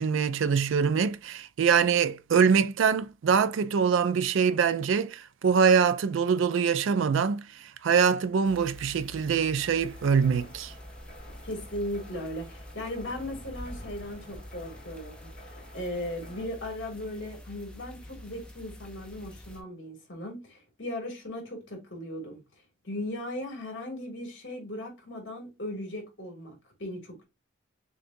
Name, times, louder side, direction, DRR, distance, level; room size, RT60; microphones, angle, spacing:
voice 1, 0.0-10.7, right 6 dB, 80° right, 0.4 m, -24 dB
sound 1, 8.4-19.6, left 1 dB, 5° left, 0.6 m, -46 dB
sound 2, 9.6-16.4, equal, 45° left, 1.2 m, -52 dB
voice 2, 11.4-22.4 22.8-26.5 26.8-27.2, left 1 dB, 65° left, 2.1 m, -37 dB
6.6 x 2.3 x 2.6 m
head